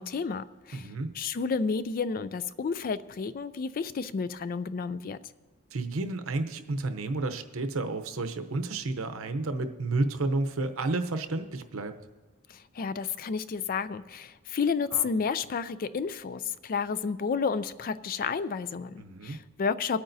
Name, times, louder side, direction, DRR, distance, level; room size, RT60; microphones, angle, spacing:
voice 1, 0.0-5.2 12.5-20.0, left 5 dB, 40° left, 15 dB, 0.3 m, -31 dB
voice 2, 0.7-1.1 5.7-12.0 14.9-15.0 19.0-19.4, right 2 dB, 75° right, 9 dB, 0.8 m, -31 dB
24.0 x 8.7 x 2.7 m, 1.3 s
head